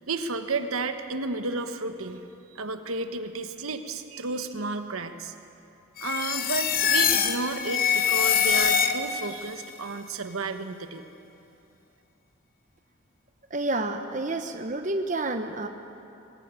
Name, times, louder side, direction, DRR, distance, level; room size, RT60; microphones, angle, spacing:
voice 1, 0.1-2.2 2.5-5.3 6.0-11.1, right 3 dB, 85° right, 8 dB, 1.2 m, -32 dB
sound 1, 6.0-9.3, left 7 dB, 40° left, 1.1 m, -24 dB
voice 2, 13.5-15.7, right 2 dB, 35° right, 6 dB, 0.9 m, -29 dB
19.5 x 17.0 x 9.6 m, 2.7 s
head